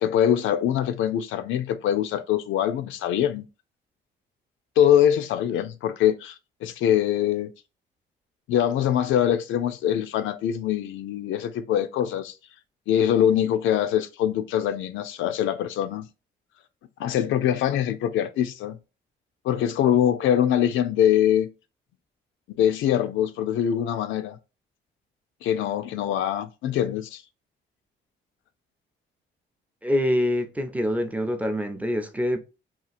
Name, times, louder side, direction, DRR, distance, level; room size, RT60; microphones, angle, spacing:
voice 1, 0.0-3.4 4.8-6.3 6.6-7.5 8.5-12.3 12.9-16.1 17.0-18.8 19.4-21.5 22.5-24.4 25.4-27.2, left 10 dB, 80° left, 0.4 m, -23 dB
voice 2, 29.8-32.4, left 1 dB, 5° right, 0.5 m, -25 dB
2.8 x 2.3 x 2.5 m
cardioid pair, 90°, 20 cm